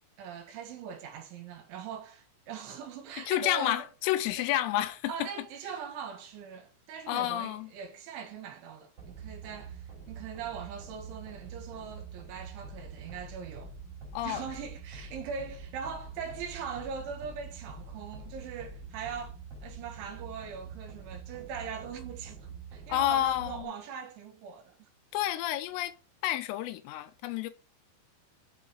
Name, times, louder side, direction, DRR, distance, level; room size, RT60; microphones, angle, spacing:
voice 1, 0.2-3.9 4.4-4.5 5.1-13.7 14.2-24.9, right 6 dB, 70° right, 3.7 m, -41 dB
voice 2, 3.3-5.3 7.1-7.7 14.1-14.5 22.9-23.7 25.1-25.9 26.2-27.5, left 13 dB, 85° left, 3.4 m, -30 dB
sound 1, 9.0-23.6, right 5 dB, 30° right, 4.7 m, -45 dB
8.2 x 7.8 x 7.0 m
omnidirectional pair, 5.9 m